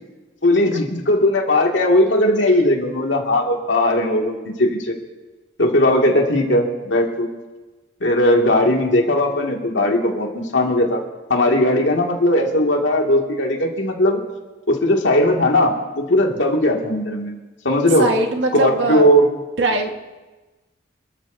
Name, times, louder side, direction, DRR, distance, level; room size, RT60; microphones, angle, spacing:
voice 1, 0.4-4.9 5.6-7.3 8.0-11.0 11.3-14.2 14.7-17.3 17.6-18.1 18.5-19.3, left 1 dB, 80° left, 0 dB, 2.3 m, -18 dB
voice 2, 18.0-19.0 19.6-19.9, right 2 dB, 85° right, 3 dB, 1.6 m, -21 dB
27.5 x 14.0 x 2.8 m, 1.2 s
head